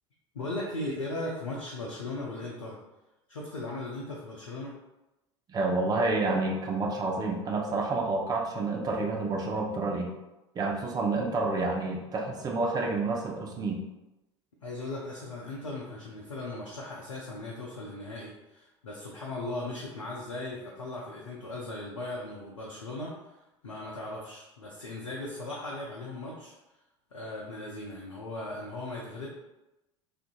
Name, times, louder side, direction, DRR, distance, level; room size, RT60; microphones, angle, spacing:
voice 1, 0.3-2.8 3.3-4.7 14.6-26.5 27.1-29.3, left 2 dB, 80° left, -4 dB, 0.5 m, -38 dB
voice 2, 5.5-10.1 10.5-13.8, right 3 dB, 25° right, 1 dB, 0.5 m, -29 dB
3.7 x 2.5 x 2.3 m, 0.99 s
figure-of-eight pair, 70°, 16 cm